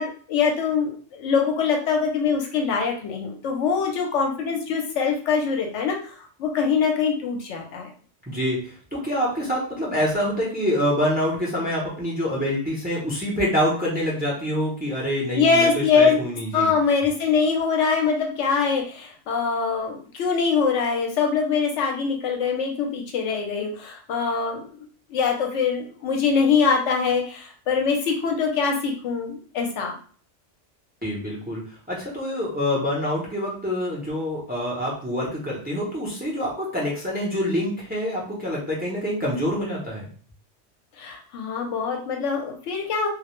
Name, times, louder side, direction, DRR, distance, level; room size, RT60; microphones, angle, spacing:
voice 1, 0.0-6.1 6.4-7.9 15.4-16.2 16.5-24.7 25.1-29.9 41.0-43.1, left 5 dB, 75° left, 2 dB, 0.9 m, -23 dB
voice 2, 8.3-16.7 31.0-40.0, equal, 10° right, -4 dB, 0.4 m, -26 dB
2.3 x 2.0 x 2.9 m, 0.43 s
omnidirectional pair, 1.3 m